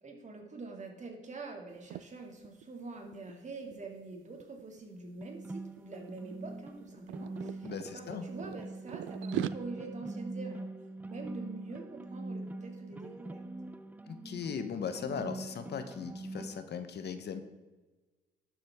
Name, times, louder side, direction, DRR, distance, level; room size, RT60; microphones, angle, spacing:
voice 1, 0.0-10.7 11.0-13.4, right 3 dB, 35° right, 2 dB, 2.3 m, -45 dB
sound 1, 1.7-2.0 2.4-2.6 2.9-4.8 5.5-5.8 6.1-7.9 8.4-9.5, right 14 dB, 80° right, 0.4 m, -40 dB
sound 2, 5.2-16.6, right 2 dB, 10° right, 0.4 m, -43 dB
voice 2, 7.6-8.2 14.1-17.4, left 7 dB, 55° left, 9 dB, 1.0 m, -38 dB
12.0 x 7.3 x 3.6 m, 1.2 s
cardioid pair, 90°, 20 cm